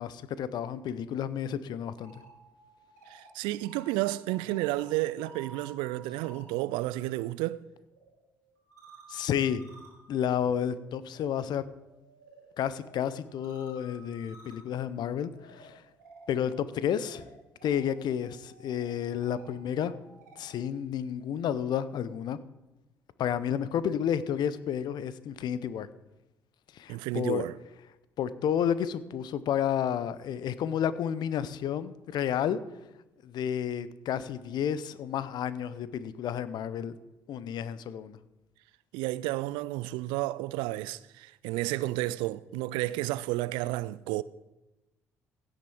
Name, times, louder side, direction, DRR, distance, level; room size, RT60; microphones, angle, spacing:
voice 1, 0.0-2.2 9.1-9.6 10.1-11.6 12.6-15.8 16.3-17.3 17.6-19.9 20.4-22.4 23.2-25.9 26.7-27.4 28.2-32.6 33.2-37.0 37.3-38.2, left 9 dB, 55° left, 0.7 m, -31 dB
sound 1, 1.8-7.0 7.3-20.6, right 2 dB, 85° right, 2.1 m, -55 dB
voice 2, 3.1-7.6 26.9-27.5 38.9-44.2, right 17 dB, 65° right, 0.4 m, -31 dB
16.0 x 6.6 x 4.6 m
figure-of-eight pair, 50°, 9 cm